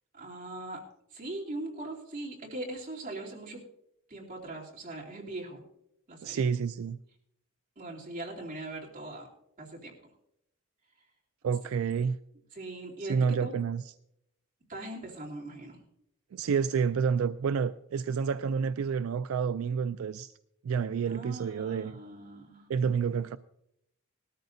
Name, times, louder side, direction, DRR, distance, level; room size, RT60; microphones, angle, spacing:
voice 1, 0.1-0.8 1.1-3.6 4.1-5.6 6.1-6.4 7.8-9.3 9.6-9.9 12.5-13.5 14.7-15.8 21.1-22.7, right 2 dB, 40° right, 3.0 m, -40 dB
voice 2, 6.2-7.0 11.4-12.2 13.1-13.8 16.3-20.3 20.6-22.0 22.7-23.4, right 6 dB, 80° right, 0.3 m, -29 dB
19.0 x 13.0 x 2.6 m
head